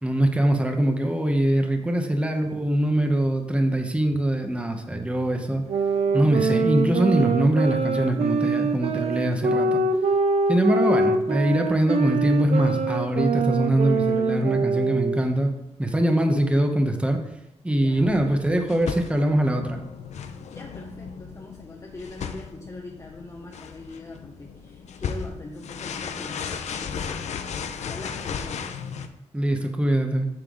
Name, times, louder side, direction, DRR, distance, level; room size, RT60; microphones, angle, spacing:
voice 1, 0.0-5.6 6.1-9.8 10.5-17.2 17.6-19.8 29.3-30.3, right 1 dB, 10° right, 4 dB, 1.1 m, -23 dB
voice 2, 1.8-2.2 17.7-18.1 20.5-27.3 27.8-28.8, left 2 dB, 30° left, -1 dB, 1.0 m, -42 dB
sound 1, 5.7-15.3, right 3 dB, 65° right, 0.7 m, -24 dB
sound 2, 17.9-29.1, left 6 dB, 90° left, 0.6 m, -35 dB
8.8 x 6.8 x 3.9 m, 0.86 s
cardioid pair, 90°, 11 cm